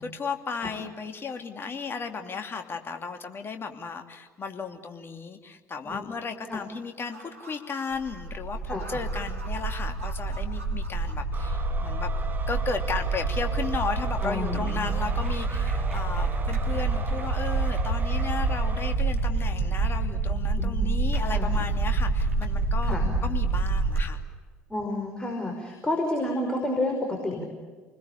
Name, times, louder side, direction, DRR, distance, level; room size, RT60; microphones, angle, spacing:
voice 1, 0.0-12.1 12.5-23.0 23.2-24.2, left 5 dB, 35° left, 5 dB, 2.8 m, -34 dB
sound 1, 7.0-24.0, right 3 dB, 85° right, 2.2 m, -27 dB
voice 2, 8.7-9.0 14.2-15.1 20.6-20.9 21.2-21.5 22.9-23.1 24.7-27.4, left 2 dB, 10° left, 1 dB, 5.4 m, -30 dB
sound 2, 11.3-19.0, right 5 dB, 25° right, 1.6 m, -40 dB
29.0 x 20.5 x 8.5 m, 1.5 s
figure-of-eight pair, 55°, 7 cm